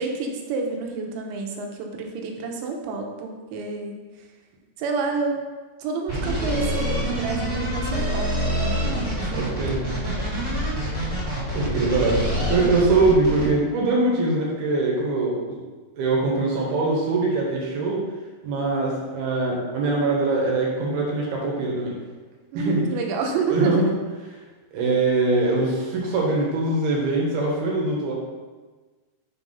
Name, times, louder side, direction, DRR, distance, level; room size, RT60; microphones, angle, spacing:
voice 1, 0.0-4.0 4.8-5.4 5.8-10.4 22.5-23.8, right 4 dB, 90° right, 2 dB, 3.2 m, -29 dB
sound 1, 6.1-13.4, equal, 15° right, 1.2 m, -26 dB
voice 2, 9.3-9.8 11.5-15.6 16.0-18.0 18.4-22.0 22.5-22.8 23.5-23.9 24.7-28.1, right 2 dB, 70° right, -3 dB, 3.1 m, -22 dB
6.6 x 4.7 x 5.4 m, 1.3 s
omnidirectional pair, 5.0 m